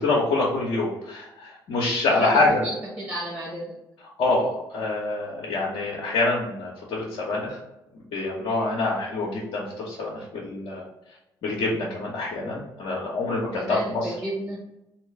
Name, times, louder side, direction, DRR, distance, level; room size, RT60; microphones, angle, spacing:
voice 1, 0.0-2.6 4.2-7.6 8.1-10.9 11.4-14.1, left 2 dB, 55° left, -5 dB, 0.8 m, -26 dB
voice 2, 2.6-3.8 13.5-14.6, right 1 dB, 15° right, -6 dB, 1.2 m, -33 dB
3.1 x 2.8 x 3.2 m, 0.91 s
figure-of-eight pair, 45°, 12 cm